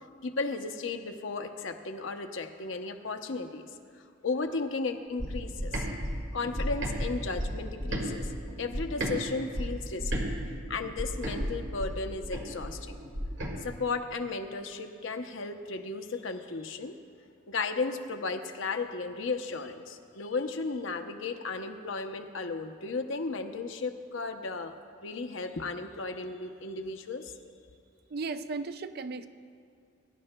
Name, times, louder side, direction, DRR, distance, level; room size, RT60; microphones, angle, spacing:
voice 1, 0.2-3.7 4.2-5.9 6.3-8.3 8.6-10.3 10.7-13.0 13.6-16.9 17.5-24.7 25.0-27.3, left 4 dB, 75° left, 6 dB, 0.7 m, -35 dB
sound 1, 5.2-9.2 9.5-13.5, equal, 70° right, 1.8 m, -33 dB
voice 2, 28.1-29.3, right 4 dB, 50° right, 10 dB, 0.4 m, -35 dB
22.0 x 10.5 x 2.2 m, 2.3 s
head